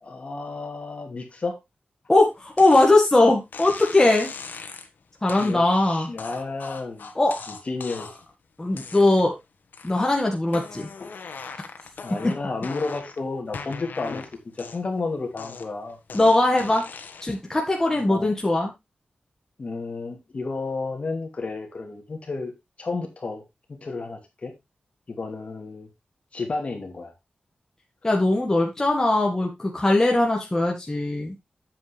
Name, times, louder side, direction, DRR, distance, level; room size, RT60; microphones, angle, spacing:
voice 1, 0.0-1.6 5.4-7.1 7.7-8.1 11.0-11.1 12.0-16.0 17.9-18.3 19.6-22.5 22.8-23.4 23.7-24.5 25.1-25.9 26.3-27.1, left 3 dB, 45° left, 2.6 m, -32 dB
voice 2, 2.1-4.3 5.2-6.1 7.2-7.4 8.6-9.3 9.8-10.9 12.2-12.3 16.1-16.8 17.2-18.7 28.0-31.3, left 2 dB, 15° left, 1.8 m, -20 dB
sound 1, 2.6-2.9 3.5-4.9 5.3-5.6 6.2-8.3 8.7-9.3 9.7-10.2 10.5-13.2 13.5-15.0 15.4-17.4, left 5 dB, 85° left, 1.4 m, -39 dB
9.0 x 7.7 x 3.3 m
wide cardioid pair, 145°, 3 cm